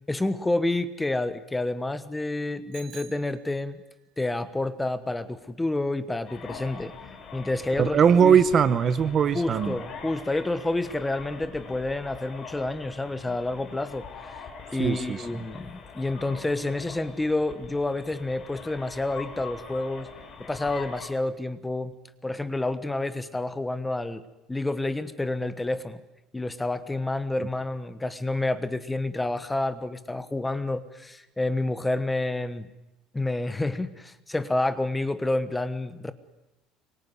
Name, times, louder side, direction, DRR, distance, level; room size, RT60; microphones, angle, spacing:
voice 1, 0.1-3.8 4.2-8.4 9.3-14.4 14.7-20.1 20.4-21.9 22.2-24.2 24.5-26.0 26.3-32.7 33.1-36.1, left 2 dB, 5° left, 12 dB, 1.2 m, -29 dB
Bicycle bell, 2.7-4.0, right 9 dB, 65° right, 3.8 m, -49 dB
sound 1, 6.3-21.1, left 5 dB, 30° left, 5.2 m, -43 dB
voice 2, 7.8-9.8 14.8-15.2, right 7 dB, 30° right, 14 dB, 1.0 m, -20 dB
26.0 x 23.5 x 9.7 m, 0.95 s
cardioid pair, 175°, 0 cm